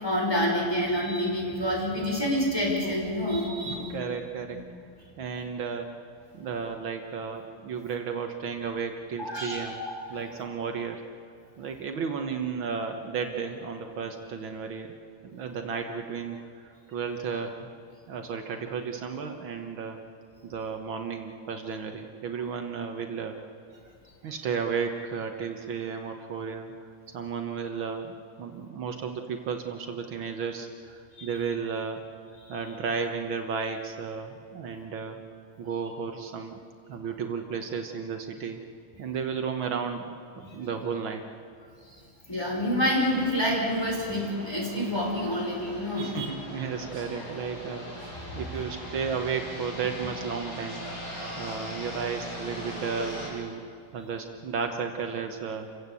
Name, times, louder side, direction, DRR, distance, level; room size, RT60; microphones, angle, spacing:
voice 1, 0.0-4.0 4.5-4.6 9.2-10.0 31.2-31.3 32.5-32.6 40.4-40.6 42.3-46.3, equal, 10° left, -3 dB, 5.7 m, -28 dB
voice 2, 3.7-4.6 5.2-5.9 6.3-9.8 10.1-11.0 11.6-15.0 15.3-17.7 18.1-20.0 20.4-23.4 24.2-26.9 27.1-32.1 32.5-35.2 35.6-36.6 36.9-38.6 39.0-41.2 46.0-50.8 51.4-53.7 53.9-55.7, right 6 dB, 70° right, 5 dB, 2.0 m, -33 dB
sound 1, 42.9-53.3, equal, 70° left, 8.3 m, -40 dB
28.5 x 16.0 x 8.4 m, 2.3 s
omnidirectional pair, 2.3 m